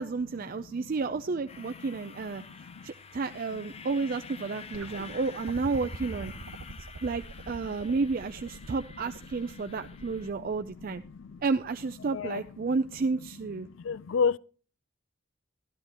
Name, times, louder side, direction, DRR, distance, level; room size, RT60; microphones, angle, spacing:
voice 1, 0.0-6.3 7.0-11.0 11.4-13.7, right 4 dB, 45° right, 0.4 m, -31 dB
voice 2, 0.5-0.9 1.9-2.9 3.5-3.9 4.9-5.2 6.4-6.8 9.7-11.4 12.0-12.5 13.2-13.3 13.7-14.4, left 5 dB, 70° left, 0.4 m, -35 dB
sound 1, 1.5-10.3, left 5 dB, 30° left, 0.6 m, -49 dB
sound 2, 4.7-11.9 13.0-13.1, right 3 dB, 65° right, 0.7 m, -44 dB
13.0 x 12.0 x 2.9 m
head